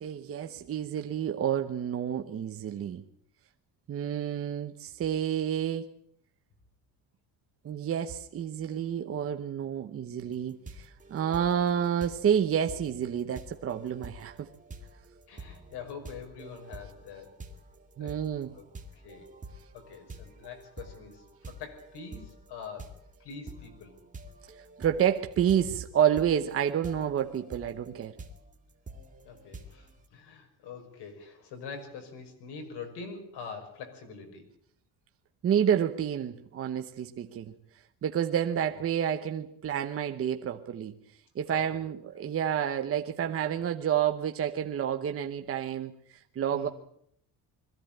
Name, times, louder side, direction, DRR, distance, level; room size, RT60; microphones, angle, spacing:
voice 1, 0.0-3.0 3.9-5.9 7.6-14.5 18.0-18.5 24.8-28.2 35.4-37.5 38.0-40.9 41.3-46.7, right 9 dB, 35° right, 5 dB, 1.0 m, -29 dB
sound 1, 10.2-30.1, right 2 dB, 20° right, 2.2 m, -48 dB
voice 2, 15.3-17.4 18.0-18.2 18.5-18.6 18.9-19.3 19.7-24.0 29.2-34.5 41.5-41.8 46.5-46.7, left 5 dB, 80° left, 6 dB, 5.8 m, -44 dB
22.5 x 15.5 x 9.0 m, 0.70 s
cardioid pair, 170°, 39 cm